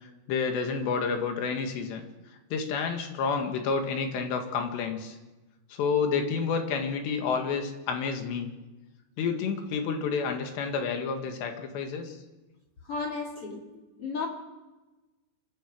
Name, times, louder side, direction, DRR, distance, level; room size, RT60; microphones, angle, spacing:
voice 1, 0.3-2.1 2.5-5.2 5.7-8.5 9.2-12.2, left 5 dB, 80° left, 4 dB, 4.1 m, -29 dB
voice 2, 12.9-13.7 14.0-14.3, left 4 dB, 40° left, -1 dB, 3.1 m, -33 dB
27.0 x 15.0 x 6.3 m, 1.1 s
omnidirectional pair, 4.9 m